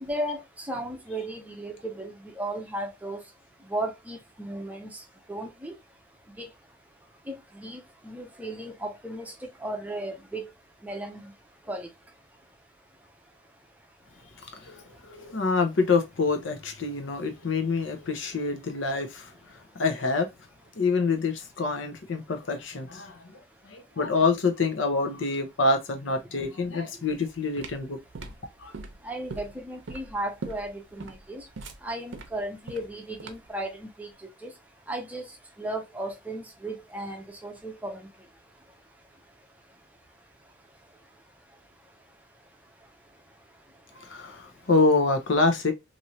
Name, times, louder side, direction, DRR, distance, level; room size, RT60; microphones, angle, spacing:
voice 1, 0.0-3.2 3.7-5.0 5.3-5.7 6.4-6.5 7.3-9.3 9.6-10.5 10.8-11.2 11.7-11.9 29.0-31.4 31.8-34.1 34.4-34.5 34.9-35.2 35.6-38.1, right 1 dB, 10° right, 0.5 m, -35 dB
voice 2, 14.4-20.3 20.7-28.0 28.6-28.7 44.0-45.7, left 3 dB, 85° left, 0.7 m, -26 dB
sound 1, 27.1-33.6, right 3 dB, 80° right, 0.6 m, -41 dB
3.1 x 2.7 x 2.7 m
head